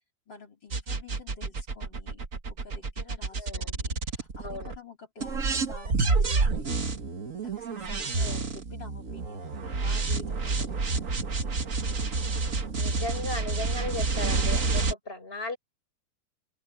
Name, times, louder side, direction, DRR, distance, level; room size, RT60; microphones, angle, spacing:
voice 1, 0.3-6.9 7.4-11.6, left 4 dB, 30° left, 4.0 m, -49 dB
sound 1, 0.7-4.8 5.2-14.9, right 3 dB, 85° right, 0.7 m, -29 dB
voice 2, 3.4-3.7 4.4-4.7 8.2-8.5 12.8-15.6, left 2 dB, 15° left, 6.6 m, -36 dB
open air
omnidirectional pair, 4.2 m